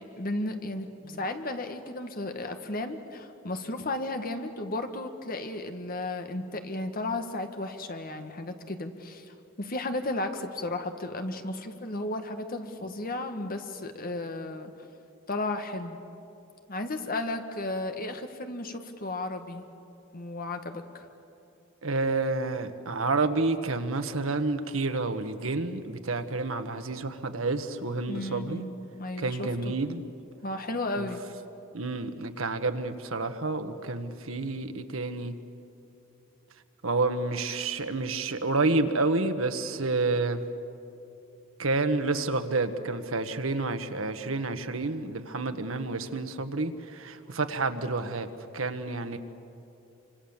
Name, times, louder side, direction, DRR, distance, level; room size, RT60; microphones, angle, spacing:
voice 1, 0.0-14.7 15.3-16.0 16.7-19.6 20.1-21.1 28.1-29.7 30.4-31.2, left 2 dB, 45° left, 6 dB, 1.7 m, -34 dB
voice 2, 21.8-28.6 29.2-30.0 31.0-31.1 31.7-35.3 36.8-40.4 41.6-48.3 48.5-49.2, right 3 dB, 90° right, 8 dB, 1.4 m, -29 dB
27.0 x 25.5 x 7.3 m, 2.7 s
head